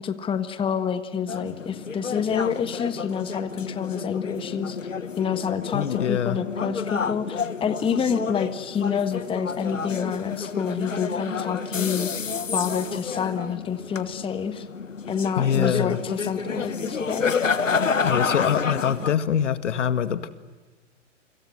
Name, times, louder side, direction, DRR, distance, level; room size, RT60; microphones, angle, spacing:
voice 1, 0.0-4.8 5.2-12.1 12.5-14.7 15.1-17.4, left 7 dB, 15° left, 10 dB, 1.4 m, -28 dB
sound 1, 1.3-19.2, left 5 dB, 90° left, 1.5 m, -30 dB
voice 2, 5.7-6.4 15.4-16.0 18.0-20.3, left 8 dB, 70° left, 12 dB, 2.0 m, -24 dB
28.5 x 26.0 x 7.8 m, 1.3 s
hypercardioid pair, 120°, 37 cm